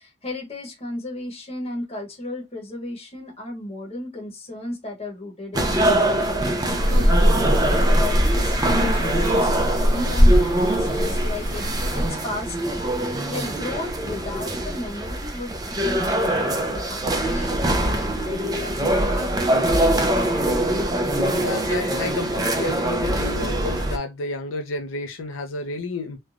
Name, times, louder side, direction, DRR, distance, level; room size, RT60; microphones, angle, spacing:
voice 1, 0.0-11.7 12.0-20.1, left 2 dB, 30° left, 0.9 m, -35 dB
sound 1, 5.5-24.0, right 1 dB, 20° right, 0.4 m, -23 dB
sound 2, 6.7-12.1, equal, 85° right, 1.0 m, -21 dB
voice 2, 21.3-26.2, left 3 dB, 85° left, 0.5 m, -31 dB
3.1 x 2.1 x 2.4 m
head